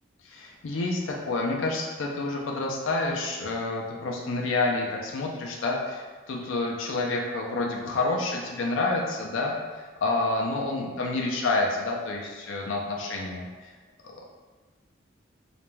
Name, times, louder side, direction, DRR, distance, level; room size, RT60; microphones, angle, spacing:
voice 1, 0.2-13.7 14.0-14.3, left 2 dB, 85° left, 0 dB, 0.4 m, -29 dB
2.5 x 2.1 x 3.1 m, 1.4 s
head